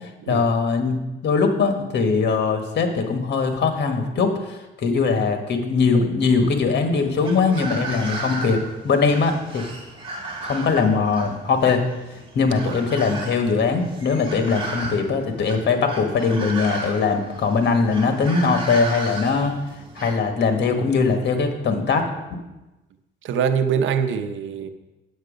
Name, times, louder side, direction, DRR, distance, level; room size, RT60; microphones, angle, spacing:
voice 1, 0.3-9.6 10.4-11.8 12.3-19.5 20.0-22.1, left 4 dB, 60° left, 5 dB, 1.6 m, -21 dB
sound 1, 6.9-20.2, right 2 dB, 25° right, 2.7 m, -35 dB
voice 2, 23.2-24.7, right 7 dB, 75° right, 9 dB, 0.9 m, -23 dB
9.3 x 8.0 x 5.1 m, 1.0 s
cardioid pair, 90°, 20 cm